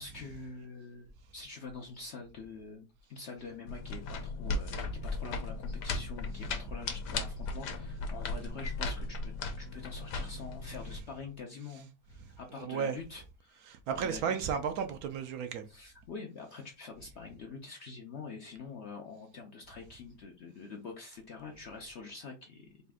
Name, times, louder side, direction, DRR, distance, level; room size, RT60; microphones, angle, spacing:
voice 1, 0.0-9.2 9.6-13.7 14.0-14.5 15.7-22.7, left 4 dB, 65° left, 0.7 m, -46 dB
sound 1, 3.7-11.0, left 3 dB, 90° left, 1.3 m, -37 dB
voice 2, 12.6-13.0 13.7-15.7, right 7 dB, 70° right, 1.0 m, -34 dB
4.1 x 2.5 x 3.5 m
omnidirectional pair, 1.7 m